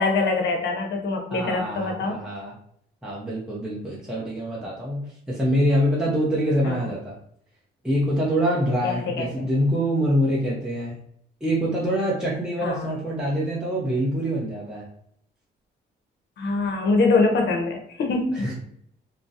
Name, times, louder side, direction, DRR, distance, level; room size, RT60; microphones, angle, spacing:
voice 1, 0.0-2.2 6.6-6.8 8.8-9.3 12.6-13.0 16.4-18.5, left 3 dB, 60° left, 3 dB, 0.6 m, -24 dB
voice 2, 1.3-2.5 3.0-7.2 7.8-11.0 11.4-14.9 18.3-18.5, equal, 5° right, -6 dB, 0.6 m, -25 dB
2.3 x 2.0 x 2.6 m, 0.69 s
cardioid pair, 90°, 20 cm